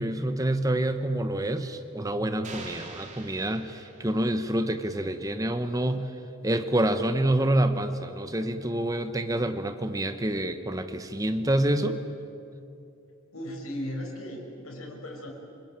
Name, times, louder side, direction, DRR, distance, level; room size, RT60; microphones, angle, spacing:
voice 1, 0.0-6.1 6.4-12.0, right 1 dB, 15° right, 9 dB, 1.1 m, -27 dB
sound 1, 2.4-4.6, right 3 dB, 35° right, 2.8 m, -45 dB
voice 2, 13.3-15.3, equal, 80° left, -1 dB, 6.0 m, -36 dB
28.5 x 20.5 x 9.2 m, 2.7 s
head